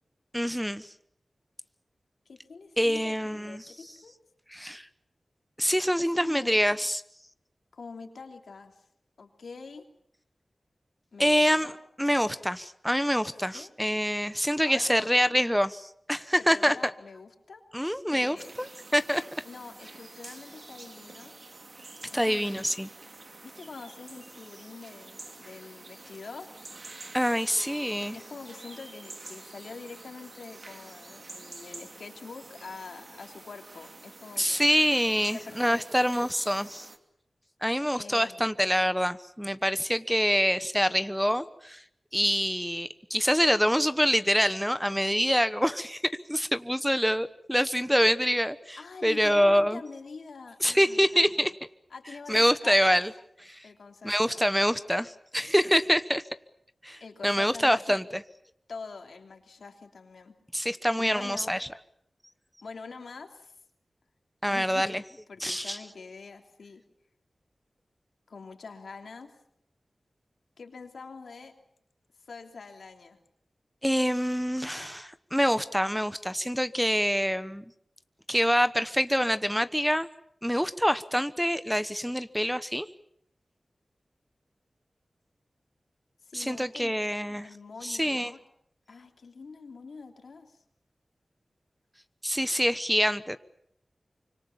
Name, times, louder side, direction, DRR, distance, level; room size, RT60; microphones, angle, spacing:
voice 1, 0.3-0.9 2.8-3.7 4.5-4.9 5.6-7.0 11.2-11.7 12.0-16.9 17.7-19.2 22.1-22.9 27.1-28.2 34.4-36.9 37.6-41.8 42.1-49.8 50.6-51.5 52.3-53.1 53.4-53.7 54.0-56.2 56.8-58.2 60.5-61.6 64.4-65.0 65.4-65.8 73.8-77.6 78.3-80.1 80.4-82.9 86.3-87.5 87.8-88.3 92.2-93.4, equal, ahead, 12 dB, 1.1 m, -26 dB
voice 2, 2.2-4.1 6.2-6.6 7.7-8.8 9.2-9.8 11.1-11.8 13.5-13.7 14.6-15.1 16.4-17.6 18.1-18.5 19.4-21.4 22.1-22.7 23.4-26.5 28.1-34.7 35.2-36.1 37.9-38.5 48.8-51.5 51.9-53.0 53.6-54.4 57.0-58.0 58.7-60.3 61.0-61.5 62.6-63.5 64.5-65.0 65.3-66.8 68.3-69.3 70.6-71.5 72.2-73.2 86.2-87.0 87.4-88.4 88.9-90.6, left 4 dB, 85° left, 4 dB, 3.2 m, -45 dB
sound 1, 18.4-37.0, right 2 dB, 55° right, 2.6 m, -48 dB
25.5 x 25.0 x 7.3 m, 0.72 s
cardioid pair, 50°, 0 cm